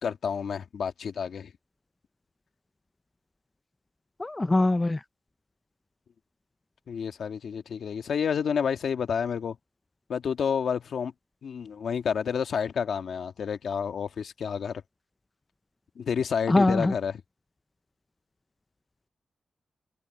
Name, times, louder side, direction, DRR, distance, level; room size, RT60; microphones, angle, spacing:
voice 1, 0.0-1.5 6.9-9.6 10.1-11.1 11.4-14.8 15.9-17.2, left 7 dB, 75° left, 1.6 m, -29 dB
voice 2, 4.2-5.0 16.5-16.9, left 2 dB, 20° left, 0.6 m, -22 dB
wide cardioid pair, 105°, 0 cm